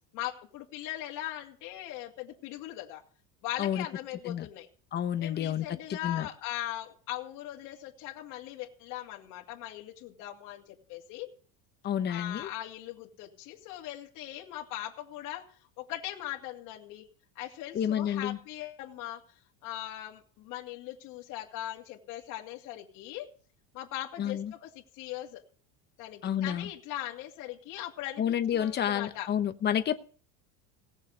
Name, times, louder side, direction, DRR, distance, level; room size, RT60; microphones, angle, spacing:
voice 1, 0.1-3.0 3.4-4.7 5.2-11.3 12.1-17.0 17.4-19.2 19.6-23.3 23.7-25.4 26.0-29.3, left 14 dB, 55° left, -1 dB, 2.5 m, -40 dB
voice 2, 4.9-5.6 5.9-6.3 11.8-12.5 17.7-18.4 24.2-24.5 26.2-26.7 28.2-29.9, left 9 dB, 25° left, 9 dB, 1.0 m, -29 dB
17.5 x 7.2 x 6.7 m, 0.43 s
cardioid pair, 155°, 37 cm